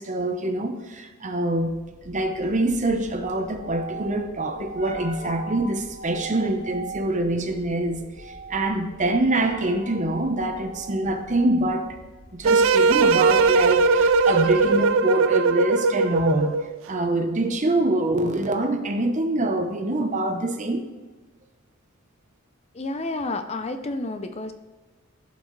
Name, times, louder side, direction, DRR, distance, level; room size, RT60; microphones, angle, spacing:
voice 1, 0.0-1.7 2.0-11.9 12.3-16.5 16.9-20.9, right 2 dB, 35° right, 0.9 m, -25 dB
sound 1, 1.6-14.8, right 2 dB, 75° left, 3.1 m, -41 dB
sound 2, 12.4-16.8, right 4 dB, 65° right, 0.4 m, -19 dB
voice 2, 22.7-24.5, left 2 dB, 30° left, 0.5 m, -30 dB
16.0 x 5.6 x 3.2 m
head